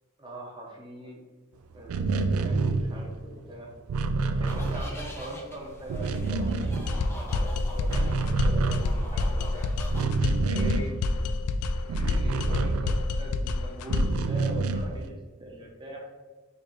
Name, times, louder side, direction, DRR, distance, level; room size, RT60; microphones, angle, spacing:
voice 1, 0.2-1.2 1.7-3.7 4.4-6.7 7.1-9.6 10.4-10.9 11.9-16.2, right 1 dB, 20° right, -2 dB, 0.8 m, -41 dB
sound 1, 1.8-5.5 5.7-7.4 7.7-13.4 13.8-15.1, right 3 dB, 70° right, 0.3 m, -28 dB
sound 2, 4.5-10.1, equal, 10° left, 0.5 m, -37 dB
sound 3, 6.9-14.2, left 3 dB, 90° left, 0.3 m, -28 dB
3.9 x 3.1 x 3.1 m, 1.3 s
head